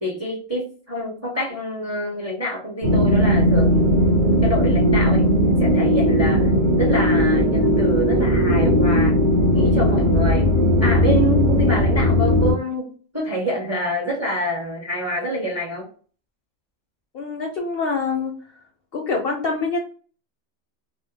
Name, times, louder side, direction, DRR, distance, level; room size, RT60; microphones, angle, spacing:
voice 1, 0.0-4.0 4.4-5.2 5.6-6.5 6.8-9.2 9.5-10.5 10.8-15.9, equal, 15° right, -2 dB, 0.6 m, -26 dB
sound 1, 2.8-12.5, equal, 45° right, 0.8 m, -17 dB
voice 2, 17.1-18.3 18.9-19.8, left 4 dB, 65° left, 0 dB, 0.6 m, -25 dB
2.2 x 2.1 x 3.2 m, 0.40 s
omnidirectional pair, 1.3 m